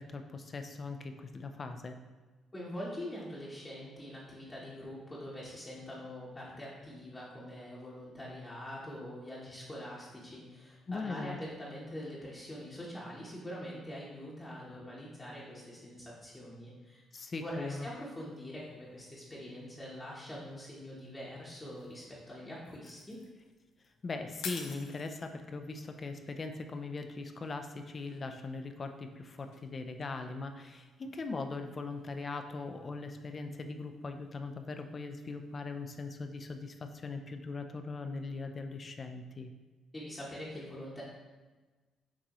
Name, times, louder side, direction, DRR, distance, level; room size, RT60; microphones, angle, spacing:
voice 1, 0.0-2.0 10.9-11.4 17.1-17.9 24.0-39.5, left 3 dB, 40° left, 6 dB, 0.4 m, -40 dB
voice 2, 2.5-17.0 17.3-23.2 39.9-41.0, equal, 20° left, -6 dB, 0.9 m, -44 dB
sound 1, 17.7-37.1, left 5 dB, 85° left, 0.5 m, -55 dB
6.0 x 2.9 x 2.9 m, 1.3 s
cardioid pair, 90°, 0 cm